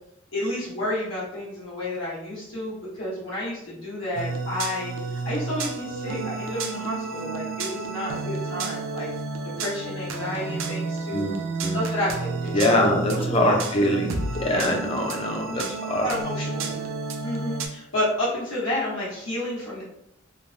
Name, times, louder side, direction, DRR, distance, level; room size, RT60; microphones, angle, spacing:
voice 1, 0.3-9.1 9.6-11.3 11.6-13.6 14.5-14.7 15.5-15.6 16.0-16.8 17.2-19.8, left 1 dB, 85° left, -8 dB, 1.1 m, -30 dB
sound 1, 4.2-17.7, right 4 dB, 75° right, 0.4 m, -31 dB
voice 2, 11.1-11.8 12.5-16.1, left 1 dB, 30° left, 1 dB, 0.5 m, -24 dB
3.1 x 2.1 x 2.6 m, 0.78 s
head